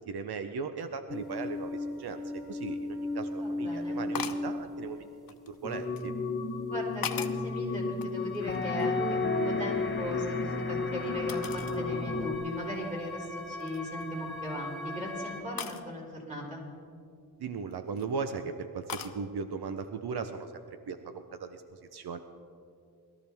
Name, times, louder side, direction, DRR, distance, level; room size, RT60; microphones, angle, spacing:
voice 1, 0.0-2.2 2.5-5.1 5.5-6.1 17.4-22.2, right 5 dB, 80° right, 8 dB, 0.7 m, -38 dB
sound 1, 1.1-5.1 8.4-15.4, left 2 dB, ahead, 2.9 m, -39 dB
voice 2, 3.4-4.0 6.7-16.6, equal, 20° right, -4 dB, 3.9 m, -38 dB
sound 2, 4.1-4.5 5.3-6.1 6.7-7.5 8.0-9.0 9.3-10.6 11.3-11.8 12.3-12.4 13.0-13.3 13.6-14.0 15.6-15.8 17.5-18.0 18.9-19.2, left 7 dB, 60° left, 0.8 m, -40 dB
sound 3, 5.6-12.3, left 3 dB, 30° left, 0.9 m, -32 dB
20.5 x 13.5 x 3.5 m, 2.4 s
wide cardioid pair, 125°, 38 cm